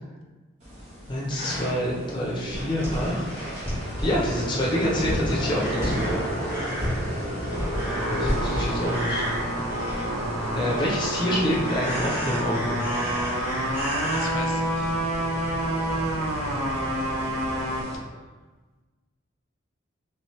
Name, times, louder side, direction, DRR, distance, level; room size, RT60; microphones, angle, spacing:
sound 1, 0.6-17.9, equal, 30° right, 1.0 m, -33 dB
voice 1, 1.1-3.3 4.0-6.1 8.1-9.2 10.5-12.8, equal, 20° left, -5 dB, 0.7 m, -27 dB
sound 2, 2.4-10.2 10.6-11.1 11.6-14.3 15.1-15.2 15.6-15.7, equal, 10° right, 1.1 m, -32 dB
sound 3, 7.5-17.8, right 1 dB, 80° right, 0.6 m, -29 dB
voice 2, 14.0-14.9 15.5-16.2, left 2 dB, 75° left, 2 dB, 0.5 m, -40 dB
3.2 x 3.0 x 3.1 m, 1.3 s
head